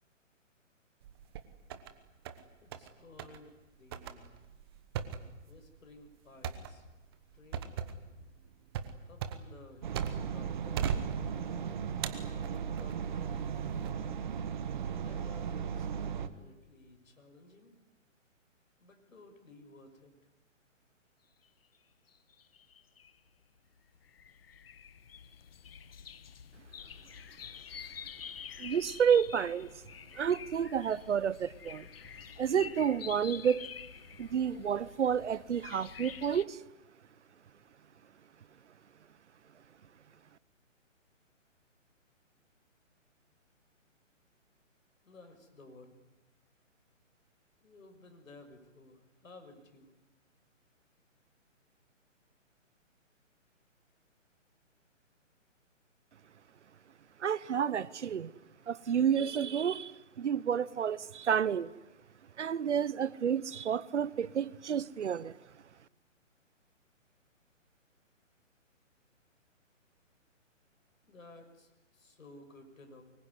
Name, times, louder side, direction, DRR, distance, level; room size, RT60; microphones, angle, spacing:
sound 1, 1.0-1.9 2.3-2.9 3.2-3.4 3.9-10.4 10.8-11.6 12.0-13.0 13.5-13.9, right 8 dB, 20° right, 1.2 m, -39 dB
voice 1, 2.6-4.4 5.5-6.8 7.3-7.7 9.1-10.9 12.2-13.4 15.0-17.7 18.8-20.1 45.0-46.0 47.6-49.9 71.0-73.0, left 2 dB, 85° left, 6.6 m, -55 dB
sound 2, 9.8-16.3, right 7 dB, 35° right, 1.5 m, -36 dB
sound 3, 22.1-23.2 23.7-36.4, left 8 dB, 45° left, 1.1 m, -48 dB
voice 2, 28.6-29.7 30.2-31.9 32.4-33.7 34.2-36.6 57.2-58.3 58.7-59.9 60.2-61.7 62.4-65.3, right 8 dB, 60° right, 1.0 m, -30 dB
24.5 x 22.5 x 9.9 m
hypercardioid pair, 165°, 39 cm